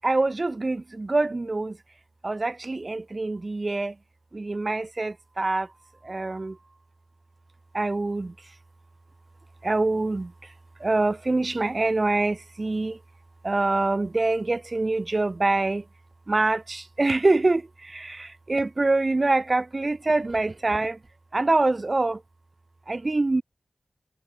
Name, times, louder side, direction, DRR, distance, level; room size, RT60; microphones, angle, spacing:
voice 1, 0.0-1.8 2.2-3.9 4.3-5.7 6.0-6.6 7.7-8.3 9.6-10.3 10.8-13.0 13.4-15.8 16.3-21.0 21.3-22.2 22.9-23.4, right 2 dB, 40° right, 2.0 m, -25 dB
wide cardioid pair, 95°, 0 cm